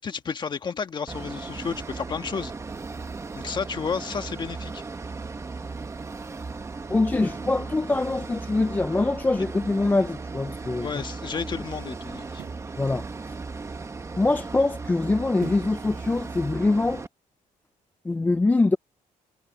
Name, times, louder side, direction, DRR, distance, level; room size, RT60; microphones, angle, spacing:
voice 1, 0.0-2.5 3.3-4.8 10.8-12.4, left 5 dB, 30° left, 1.5 m, -32 dB
sound 1, 1.1-17.1, right 4 dB, 20° right, 1.0 m, -36 dB
voice 2, 6.9-10.9 12.8-13.4 14.2-17.1 18.0-18.8, left 2 dB, 10° left, 0.4 m, -24 dB
sound 2, 12.4-12.7 15.4-15.8 16.3-16.4, right 12 dB, 85° right, 1.2 m, -42 dB
cardioid pair, 160°, 14 cm